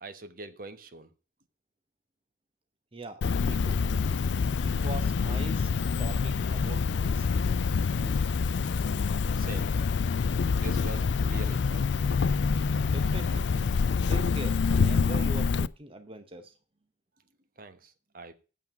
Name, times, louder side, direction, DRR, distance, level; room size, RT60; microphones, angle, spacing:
voice 1, 0.0-1.1 9.4-9.9 10.6-11.9 17.6-18.3, right 3 dB, 50° right, 1.1 m, -43 dB
voice 2, 2.9-3.8 4.6-5.7 6.0-7.5 7.9-8.2 12.9-13.5 14.1-16.5, right 2 dB, 30° right, 0.8 m, -42 dB
Cricket, 3.2-15.7, left 5 dB, 85° left, 0.4 m, -26 dB
8.4 x 7.3 x 5.8 m
head